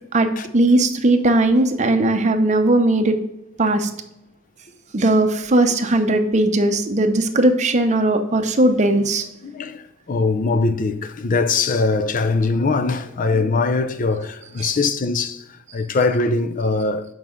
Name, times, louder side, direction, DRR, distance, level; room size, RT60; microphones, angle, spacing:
voice 1, 0.1-3.2 3.6-3.9 4.9-9.2 14.6-14.7, right 2 dB, 35° right, 0.7 m, -18 dB
voice 2, 9.4-17.1, left 3 dB, 40° left, 0.5 m, -21 dB
6.8 x 4.7 x 3.8 m
head